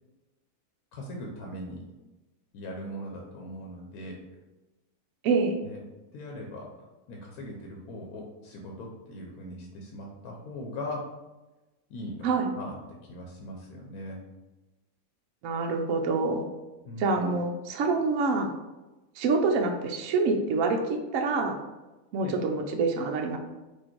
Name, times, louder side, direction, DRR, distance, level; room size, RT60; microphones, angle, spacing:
voice 1, 0.9-1.8 2.5-4.1 5.6-5.8 6.1-6.7 7.1-11.1 11.9-12.3 12.5-14.2 16.8-17.1 22.2-22.4, left 1 dB, 80° left, 0 dB, 1.2 m, -40 dB
voice 2, 5.2-5.6 12.2-12.5 15.4-16.5 17.0-18.5 19.2-21.6 22.1-23.4, right 3 dB, 70° right, 3 dB, 0.9 m, -26 dB
4.5 x 2.6 x 4.3 m, 1.1 s
omnidirectional pair, 1.6 m